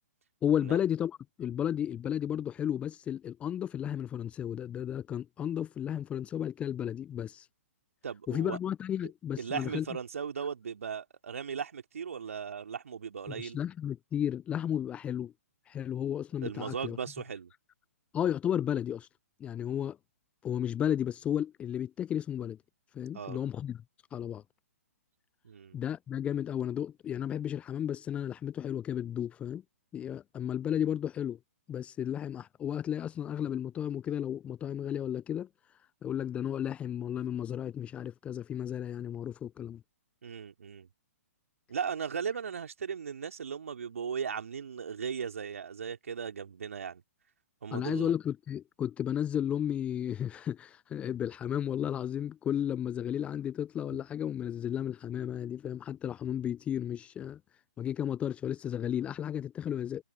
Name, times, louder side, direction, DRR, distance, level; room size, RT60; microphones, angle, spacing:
voice 1, 0.4-7.5 8.3-9.9 13.3-15.3 15.7-17.0 18.1-19.1 19.4-20.0 20.4-22.6 22.9-23.8 24.1-24.4 25.7-29.6 29.9-31.4 31.7-35.5 36.0-39.8 47.7-57.4 57.8-60.0, left 9 dB, 15° left, 0.5 m, -33 dB
voice 2, 8.0-8.6 9.4-13.6 16.4-17.5 23.1-23.4 25.4-25.8 40.2-40.9 41.7-47.0 47.6-48.1, right 6 dB, 65° right, 3.4 m, -37 dB
figure-of-eight pair, 125°, 8 cm